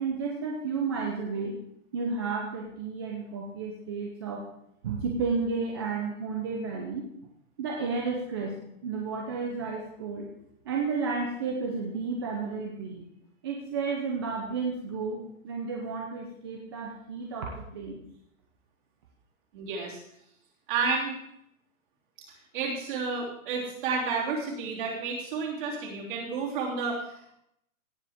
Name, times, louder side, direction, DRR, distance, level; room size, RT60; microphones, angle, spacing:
voice 1, 0.0-1.6 1.9-4.4 4.8-7.1 7.6-10.3 10.6-13.1 13.4-18.0, right 4 dB, 20° right, -1 dB, 0.7 m, -32 dB
voice 2, 19.5-20.0 20.7-21.2 22.5-27.3, right 4 dB, 35° right, -3 dB, 3.3 m, -31 dB
17.0 x 7.6 x 3.6 m, 0.75 s
hypercardioid pair, 170°, 41 cm